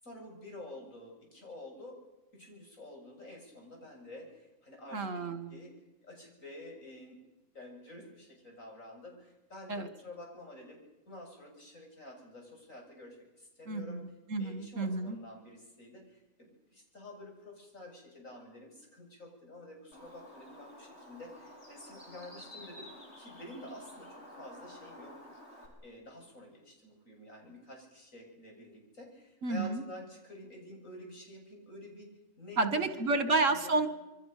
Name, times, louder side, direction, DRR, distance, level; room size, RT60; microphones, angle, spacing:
voice 1, 0.0-2.0 2.3-7.2 7.5-14.0 14.4-25.4 25.8-33.2 33.5-33.8, left 1 dB, 65° left, 1 dB, 8.0 m, -49 dB
voice 2, 4.9-5.6 9.7-9.9 13.7-15.2 29.4-29.8 32.6-33.9, right 3 dB, 60° right, 11 dB, 2.3 m, -30 dB
Bird, 19.9-25.7, left 1 dB, 50° left, 6.7 m, -51 dB
27.5 x 23.0 x 6.8 m, 0.99 s
omnidirectional pair, 1.5 m